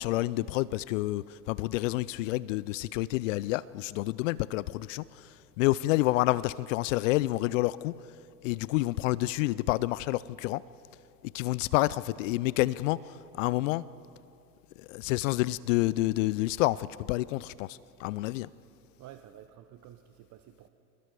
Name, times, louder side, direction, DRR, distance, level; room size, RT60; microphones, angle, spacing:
voice 1, 0.0-8.0 8.4-10.6 11.3-13.9 14.8-18.5, left 18 dB, 50° left, 20 dB, 0.5 m, -29 dB
voice 2, 19.0-20.7, right 12 dB, 35° right, 9 dB, 0.8 m, -51 dB
28.0 x 19.5 x 4.7 m, 2.7 s
hypercardioid pair, 85°, 50 cm